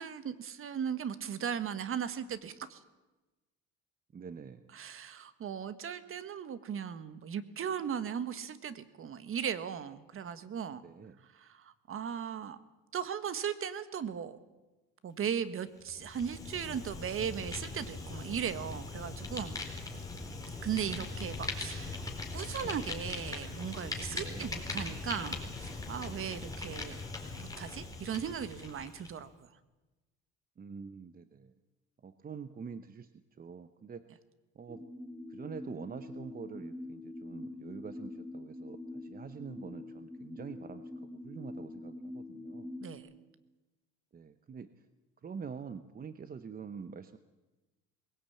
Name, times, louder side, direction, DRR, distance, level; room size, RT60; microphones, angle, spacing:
voice 1, 0.0-2.8 4.7-10.8 11.3-12.6 12.9-14.4 15.0-19.6 20.6-22.0 22.3-27.0 27.4-29.3 42.8-43.1, right 8 dB, 45° right, 13 dB, 1.5 m, -37 dB
voice 2, 4.1-4.7 10.8-11.2 24.1-24.5 30.6-31.5 32.0-33.1 33.4-34.0 34.5-34.8 35.3-40.9 41.2-42.7 44.1-44.7 45.2-47.2, right 6 dB, 30° right, 11 dB, 0.9 m, -45 dB
Fire, 15.8-29.1, left 3 dB, 10° left, 4.3 m, -40 dB
sound 1, 34.7-43.0, left 2 dB, 5° right, 3.6 m, -45 dB
20.5 x 17.5 x 8.6 m, 1.1 s
cardioid pair, 95°, 29 cm